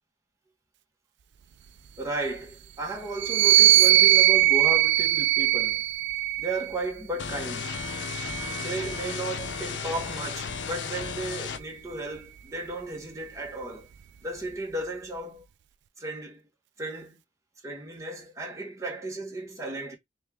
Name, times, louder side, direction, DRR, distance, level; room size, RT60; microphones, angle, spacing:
voice 1, 2.0-5.8 6.4-7.7 8.5-13.9 14.2-15.4 16.0-16.4 16.8-17.2 17.6-20.0, right 2 dB, 20° right, 1.5 m, -34 dB
sound 1, 3.1-6.7 7.6-9.2, right 15 dB, 75° right, 0.3 m, -21 dB
sound 2, 7.2-11.6, left 6 dB, 90° left, 0.6 m, -34 dB
3.6 x 3.3 x 3.4 m
head